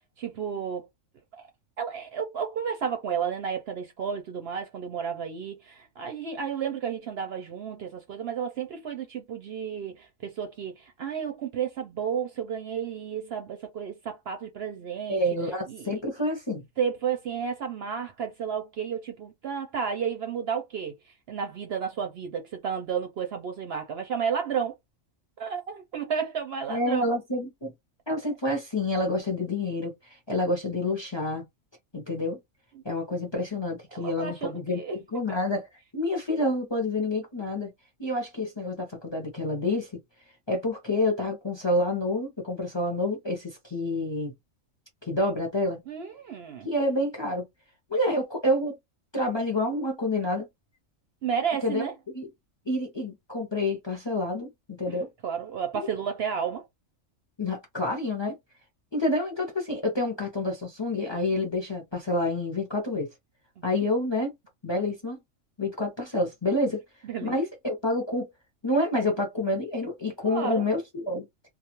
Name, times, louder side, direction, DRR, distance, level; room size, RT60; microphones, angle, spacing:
voice 1, 0.2-0.9 1.4-1.5 1.8-15.2 15.7-16.0 16.8-24.8 25.4-27.0 32.7-32.8 33.9-34.9 35.3-35.4 45.9-46.7 51.2-51.9 54.9-56.6 63.6-63.7 67.0-67.3 70.2-70.7, right 7 dB, 60° right, 0.7 m, -32 dB
voice 2, 15.1-16.7 26.7-27.7 28.1-31.5 31.9-32.4 32.8-35.7 35.9-37.7 38.0-40.0 40.5-44.3 45.0-45.8 46.6-47.5 47.9-48.8 49.1-50.5 51.6-51.8 52.1-52.3 52.7-55.1 57.4-58.3 58.9-63.1 63.6-64.3 64.6-65.2 65.6-66.8 67.2-68.3 68.6-71.3, left 1 dB, 25° left, 0.6 m, -28 dB
2.3 x 2.3 x 2.9 m
omnidirectional pair, 1.4 m